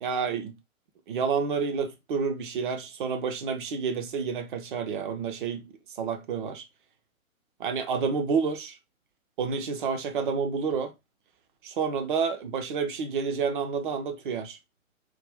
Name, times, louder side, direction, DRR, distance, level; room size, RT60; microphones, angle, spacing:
voice 1, 0.0-0.5 1.1-5.6 5.9-6.6 7.6-8.8 9.4-10.9 11.6-14.6, right 5 dB, 35° right, 0.8 m, -29 dB
4.8 x 2.5 x 3.5 m
figure-of-eight pair, 125°, 42 cm